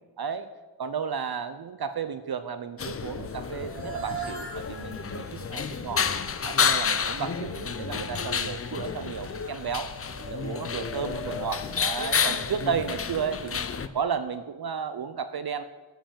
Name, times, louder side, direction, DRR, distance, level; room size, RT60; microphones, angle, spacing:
voice 1, 0.2-0.5 0.8-6.0 6.4-9.9 10.3-13.6 13.9-15.6, right 6 dB, 55° right, 11 dB, 0.5 m, -33 dB
sound 1, 2.8-13.9, left 6 dB, 30° left, 0.4 m, -30 dB
sound 2, 3.4-13.6, right 2 dB, 25° right, 1.8 m, -42 dB
8.7 x 5.5 x 7.4 m, 1.2 s
wide cardioid pair, 105°, 48 cm